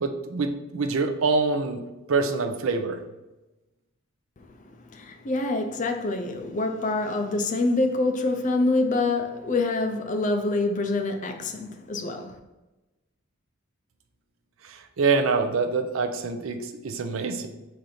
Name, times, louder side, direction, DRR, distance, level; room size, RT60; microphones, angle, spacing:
voice 1, 0.0-1.8 2.1-3.0 14.7-17.5, right 4 dB, 70° right, 0.5 m, -25 dB
voice 2, 4.9-12.4, left 2 dB, 35° left, 0.4 m, -26 dB
4.2 x 2.6 x 4.9 m
head